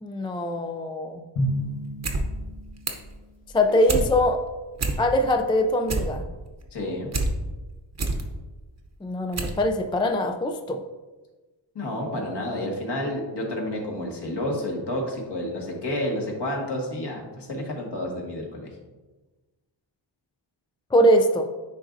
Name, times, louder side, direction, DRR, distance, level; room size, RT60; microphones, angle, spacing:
voice 1, 0.0-1.3 3.5-4.4 5.0-6.2 9.0-10.8 20.9-21.5, equal, 10° left, 5 dB, 0.3 m, -22 dB
Drum, 1.4-3.1, equal, 90° left, 1.4 m, -30 dB
sound 1, 1.8-2.2 2.5-3.1 3.5-4.1 4.4-4.5 4.7-5.3 5.6-7.3 7.7-8.2 8.8-8.9 9.3-9.6 9.9-10.0, right 3 dB, 35° right, 0.9 m, -27 dB
voice 2, 6.7-7.1 11.8-18.7, left 1 dB, 55° left, -1 dB, 1.7 m, -30 dB
9.9 x 3.9 x 2.6 m, 1.2 s
wide cardioid pair, 95°, 48 cm